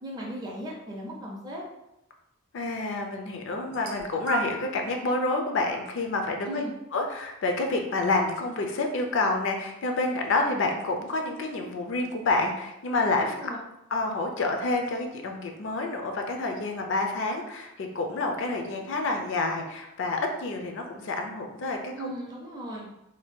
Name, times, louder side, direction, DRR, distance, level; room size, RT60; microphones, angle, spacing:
voice 1, 0.0-1.6 6.4-6.7 13.2-13.6 21.9-22.9, equal, 20° right, -3 dB, 0.5 m, -37 dB
voice 2, 2.5-6.6 6.9-13.5 13.9-22.1, left 2 dB, 55° left, 3 dB, 0.4 m, -28 dB
sound 1, 3.6-4.8 5.7-5.9 6.9-7.0, right 6 dB, 80° right, 0.6 m, -36 dB
2.7 x 2.2 x 3.5 m, 0.89 s
head